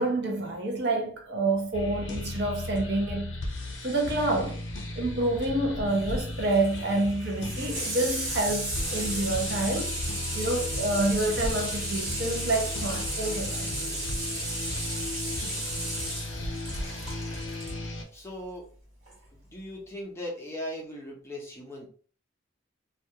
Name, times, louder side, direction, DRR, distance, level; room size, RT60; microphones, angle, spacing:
voice 1, 0.0-3.4 3.8-4.6 5.0-9.9 10.3-13.8, right 2 dB, 55° right, 0.5 m, -28 dB
sound 1, 1.7-18.0, left 1 dB, 65° left, 0.6 m, -35 dB
Water tap faucet / Sink (filling or washing), 5.9-17.8 19.1-19.2, right 1 dB, 85° right, 1.2 m, -35 dB
voice 2, 15.2-15.6 18.1-18.6 19.5-21.9, left 1 dB, 15° left, 0.5 m, -39 dB
2.2 x 2.2 x 2.7 m
head